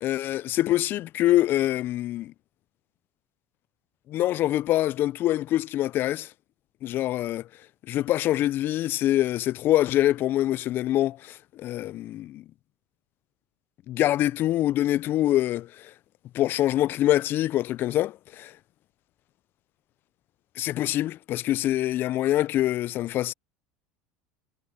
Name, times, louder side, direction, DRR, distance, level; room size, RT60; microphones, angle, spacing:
voice 1, 0.0-2.3 4.1-6.3 6.8-7.4 7.9-12.4 13.9-15.9 16.3-18.5 20.6-23.3, left 14 dB, 50° left, 0.5 m, -25 dB
hypercardioid pair, 95°, 5 cm